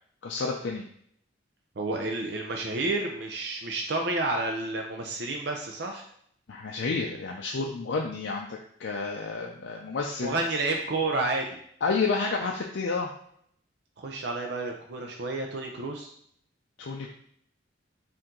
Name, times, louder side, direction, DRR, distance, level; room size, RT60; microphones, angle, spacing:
voice 1, 0.2-0.9 6.5-10.3 11.8-13.1 16.8-17.1, left 4 dB, 75° left, 0 dB, 0.4 m, -30 dB
voice 2, 1.8-6.0 10.2-11.6 14.0-16.1, right 2 dB, 60° right, 2 dB, 0.5 m, -30 dB
4.5 x 2.6 x 3.7 m, 0.66 s
head